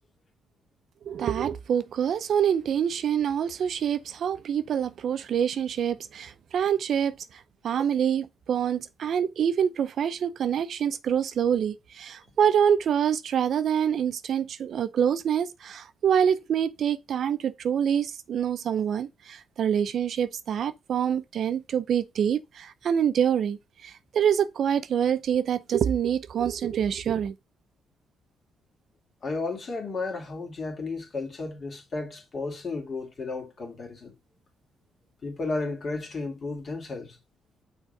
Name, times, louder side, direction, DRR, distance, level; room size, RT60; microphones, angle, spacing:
voice 1, 1.1-27.3, right 8 dB, 60° right, 0.5 m, -26 dB
voice 2, 29.2-34.1 35.2-37.2, left 3 dB, 40° left, 2.2 m, -33 dB
6.2 x 3.8 x 5.3 m
cardioid pair, 90°, 0 cm